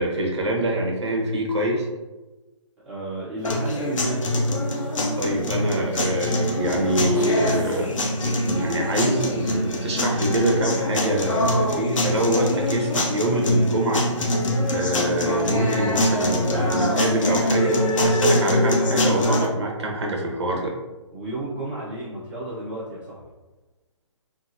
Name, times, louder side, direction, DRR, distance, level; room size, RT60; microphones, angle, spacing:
voice 1, 0.0-1.9 5.2-8.0 8.4-14.3 14.7-17.8 18.0-20.7, right 1 dB, 55° right, 0 dB, 0.9 m, -25 dB
voice 2, 2.8-4.2 21.1-23.2, right 2 dB, 5° right, -10 dB, 0.9 m, -32 dB
sound 1, 3.4-19.5, left 1 dB, 80° left, 0.7 m, -23 dB
sound 2, 3.4-3.9 4.7-8.3, right 1 dB, 15° left, 1.0 m, -36 dB
3.7 x 2.0 x 2.7 m, 1.2 s
hypercardioid pair, 150°, 16 cm